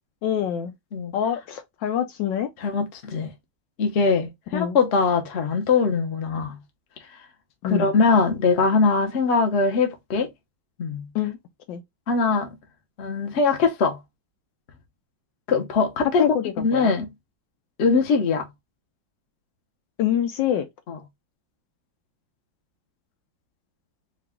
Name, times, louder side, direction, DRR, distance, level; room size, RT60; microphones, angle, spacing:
voice 1, 0.2-0.7 1.1-2.5 4.5-4.8 7.6-7.9 11.1-11.4 11.7-11.8 16.2-16.9 20.0-20.7, left 10 dB, 75° left, 1.2 m, -25 dB
voice 2, 2.6-3.3 3.8-6.5 7.6-10.3 10.8-11.1 12.1-12.5 13.0-14.0 15.5-16.3 16.6-17.1 17.8-18.5 20.9-21.0, left 4 dB, 50° left, 0.8 m, -22 dB
4.7 x 2.4 x 3.5 m
omnidirectional pair, 2.2 m